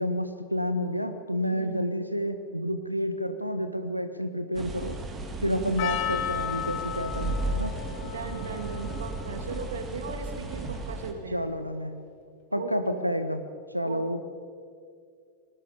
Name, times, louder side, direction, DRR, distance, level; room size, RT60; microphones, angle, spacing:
voice 1, 0.0-5.0 5.4-7.7 11.3-12.0 12.5-13.4 13.7-14.2, equal, 90° right, 10 dB, 1.4 m, -30 dB
voice 2, 1.5-2.0 5.5-5.9 8.0-11.4 12.5-13.1 13.8-14.2, right 5 dB, 65° right, 7 dB, 1.9 m, -38 dB
sound 1, 4.5-11.1, right 2 dB, 25° right, 2.8 m, -35 dB
Percussion, 5.8-11.0, left 11 dB, 45° left, 2.3 m, -35 dB
29.0 x 20.5 x 5.0 m, 2.3 s
figure-of-eight pair, 90°, 0 cm